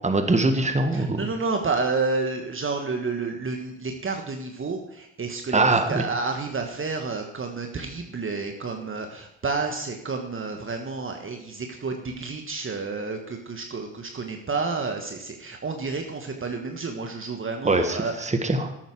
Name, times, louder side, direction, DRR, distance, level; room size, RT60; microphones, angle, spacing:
voice 1, 0.0-1.3 5.5-6.0 17.6-18.7, right 2 dB, 20° right, 6 dB, 1.7 m, -22 dB
voice 2, 0.9-18.3, right 4 dB, 35° right, 4 dB, 1.5 m, -30 dB
12.5 x 8.9 x 4.8 m, 0.84 s
hypercardioid pair, 50°, 35 cm